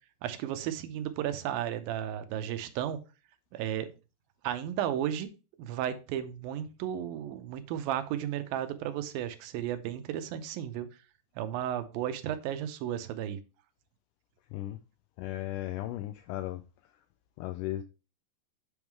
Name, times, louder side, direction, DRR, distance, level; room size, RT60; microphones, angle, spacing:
voice 1, 0.2-3.0 3.5-3.9 4.4-5.3 5.6-10.9 11.4-13.4, right 10 dB, 85° right, 2.6 m, -34 dB
voice 2, 15.2-16.6 17.4-17.8, left 14 dB, 80° left, 1.9 m, -35 dB
8.2 x 3.7 x 4.6 m
omnidirectional pair, 4.1 m